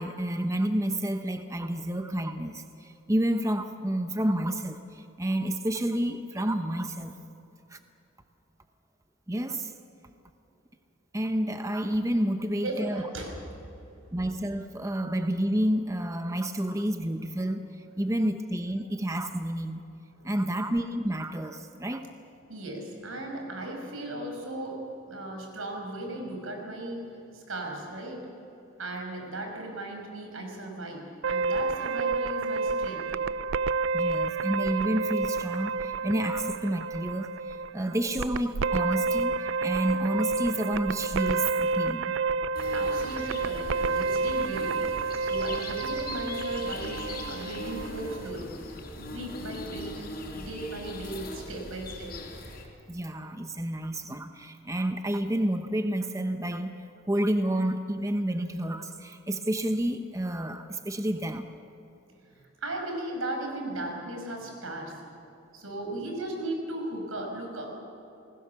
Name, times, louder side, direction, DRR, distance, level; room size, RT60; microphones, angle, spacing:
voice 1, 0.0-7.1 7.7-7.8 9.3-9.7 11.1-13.0 14.1-19.8 20.2-22.0 33.9-42.1 52.9-61.4, right 1 dB, 15° right, 7 dB, 0.8 m, -30 dB
voice 2, 12.6-13.4 20.1-20.3 22.5-24.8 25.1-27.1 27.3-28.2 28.8-33.1 42.7-44.8 45.2-47.0 47.3-48.5 49.0-49.9 50.3-52.1 62.3-65.0 65.5-67.8, right 1 dB, 90° right, 2 dB, 5.8 m, -36 dB
sound 1, 31.2-48.3, right 4 dB, 70° right, 0.5 m, -30 dB
sound 2, 42.5-52.6, left 2 dB, 45° left, 4.4 m, -40 dB
29.0 x 20.0 x 7.0 m, 2.8 s
head